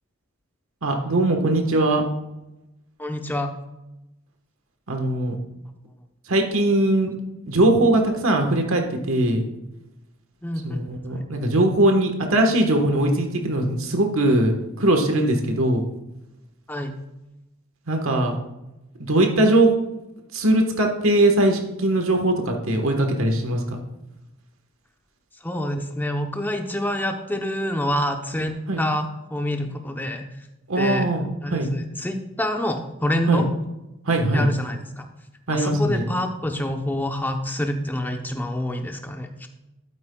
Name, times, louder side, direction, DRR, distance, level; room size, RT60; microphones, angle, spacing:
voice 1, 0.8-2.0 4.9-5.4 6.3-7.1 7.5-9.4 10.6-14.5 14.8-15.8 17.9-18.4 19.0-19.7 20.3-23.8 28.7-28.8 30.7-31.7 33.3-33.4 34.0-34.5 35.5-36.1, right 1 dB, 75° right, 3 dB, 1.3 m, -20 dB
voice 2, 3.0-3.5 10.4-10.8 16.7-16.9 25.4-30.2 30.8-31.1 31.4-33.4 34.3-35.1 35.5-39.5, left 1 dB, 10° left, 4 dB, 0.7 m, -27 dB
12.0 x 8.9 x 2.3 m, 0.95 s
head